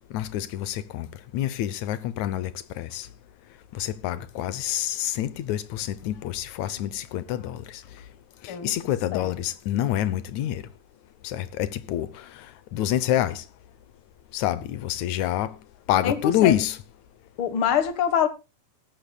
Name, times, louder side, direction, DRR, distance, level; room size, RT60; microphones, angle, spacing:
voice 1, 0.1-1.1 1.3-2.5 2.8-3.1 3.7-7.8 8.4-10.6 11.2-12.3 12.7-13.4 14.3-15.5 15.9-16.8, left 12 dB, 75° left, 1.8 m, -27 dB
voice 2, 16.0-16.5 17.4-18.3, left 9 dB, 55° left, 1.6 m, -24 dB
18.0 x 13.5 x 2.3 m
omnidirectional pair, 4.0 m